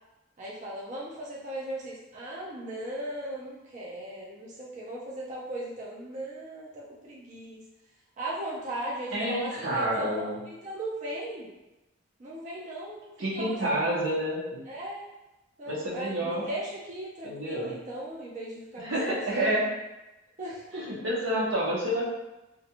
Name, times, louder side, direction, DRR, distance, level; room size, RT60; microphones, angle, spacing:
voice 1, 0.4-7.6 8.2-11.5 12.2-14.1 14.7-15.1 15.6-19.5 20.4-21.0, right 1 dB, 40° right, -5 dB, 0.4 m, -38 dB
voice 2, 9.1-10.4 13.2-14.6 15.7-16.4 17.2-17.7 18.8-19.6 20.7-22.1, right 1 dB, 85° right, -4 dB, 0.7 m, -29 dB
2.4 x 2.2 x 2.8 m, 0.99 s
head